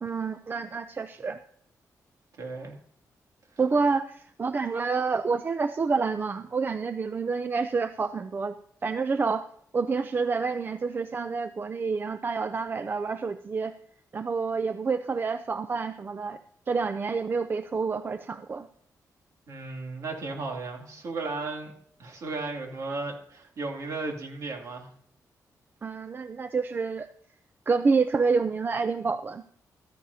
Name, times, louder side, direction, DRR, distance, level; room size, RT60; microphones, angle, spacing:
voice 1, 0.0-1.4 3.6-8.6 8.8-9.5 9.7-13.7 14.1-16.4 16.7-18.7 25.8-27.1 27.7-29.4, right 4 dB, 30° right, 11 dB, 0.4 m, -28 dB
voice 2, 2.4-2.7 19.5-21.7 22.0-24.9, right 3 dB, 60° right, 1 dB, 2.6 m, -35 dB
15.0 x 13.5 x 2.8 m, 0.64 s
wide cardioid pair, 140°, 6 cm